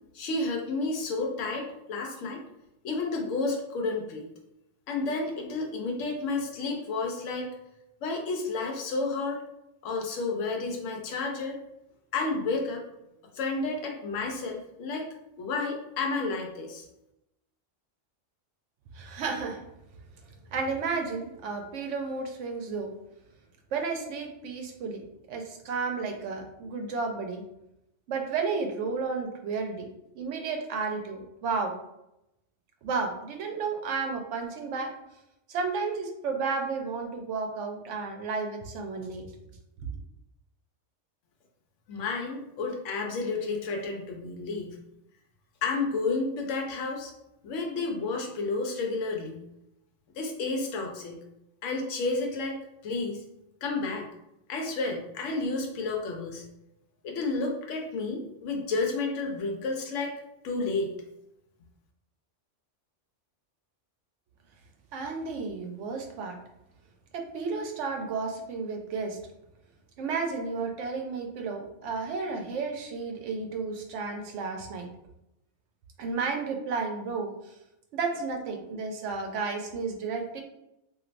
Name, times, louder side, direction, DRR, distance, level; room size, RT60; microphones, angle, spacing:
voice 1, 0.1-2.4 2.8-4.3 4.9-7.5 8.0-9.4 9.8-11.6 12.1-12.8 13.3-15.1 15.4-16.8 41.9-44.8 45.6-47.1 47.4-49.4 50.1-51.2 51.6-53.2 53.6-54.1 54.5-56.4 57.0-60.1 60.4-60.9, left 3 dB, 90° left, 1 dB, 0.9 m, -31 dB
voice 2, 18.9-19.6 20.5-22.9 23.7-27.4 28.1-29.9 30.1-31.8 32.8-34.9 35.5-39.3 64.9-66.4 67.1-69.2 70.0-74.9 76.0-77.3 77.9-80.4, right 4 dB, 75° right, 3 dB, 0.9 m, -32 dB
3.1 x 2.5 x 2.4 m, 0.86 s
omnidirectional pair, 1.3 m